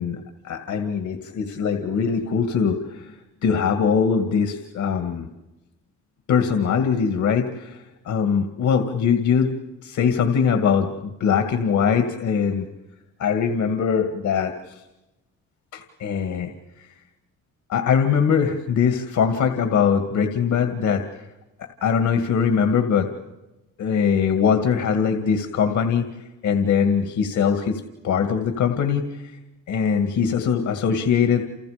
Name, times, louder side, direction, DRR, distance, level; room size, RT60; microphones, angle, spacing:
voice 1, 0.0-5.3 6.3-9.5 9.8-12.7 13.2-14.8 15.7-16.5 16.8-16.9 17.7-21.2 21.8-23.1 23.8-26.1 26.4-29.3 29.7-31.4, left 6 dB, 70° left, 6 dB, 2.2 m, -22 dB
30.0 x 29.0 x 5.2 m, 1.0 s
cardioid pair, 90°, 30 cm